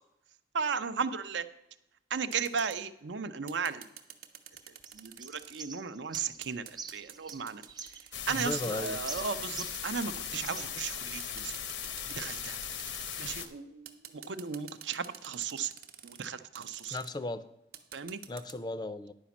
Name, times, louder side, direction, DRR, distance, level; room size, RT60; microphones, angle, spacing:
voice 1, 0.5-1.4 2.1-3.9 4.9-7.6 8.3-11.5 12.2-12.6 13.2-15.7 16.0-17.0 17.9-18.2, right 6 dB, 80° right, 11 dB, 0.6 m, -35 dB
sound 1, 2.3-2.8 3.5-5.6 6.1-8.2 8.6-10.6 11.2-13.5 13.9-16.3 16.5-17.1 17.7-18.5, right 9 dB, 50° right, 0.9 m, -49 dB
sound 2, 4.5-10.1 10.4-11.3, right 5 dB, 25° right, 0.6 m, -46 dB
sound 3, 8.1-13.5, left 8 dB, 80° left, 0.8 m, -38 dB
voice 2, 8.3-9.0 16.9-17.5 18.3-19.1, left 2 dB, 25° left, 13 dB, 0.4 m, -36 dB
10.5 x 5.1 x 7.1 m, 0.89 s
head